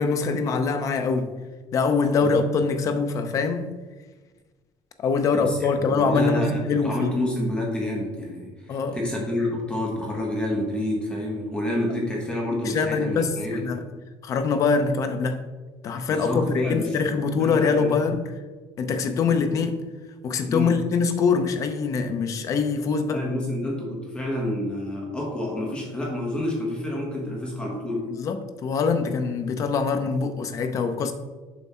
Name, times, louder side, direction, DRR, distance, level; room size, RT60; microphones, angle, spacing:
voice 1, 0.0-1.3 1.7-3.7 5.0-7.2 8.7-9.0 12.6-13.8 14.2-15.4 15.8-18.3 18.8-19.8 20.2-23.2 28.1-31.1, left 5 dB, 35° left, 0.7 m, -24 dB
voice 2, 5.3-13.6 16.1-17.0 17.4-18.2 20.5-20.7 23.1-28.1, left 1 dB, 10° left, 1.3 m, -28 dB
7.2 x 5.4 x 4.3 m
cardioid pair, 170°, 9 cm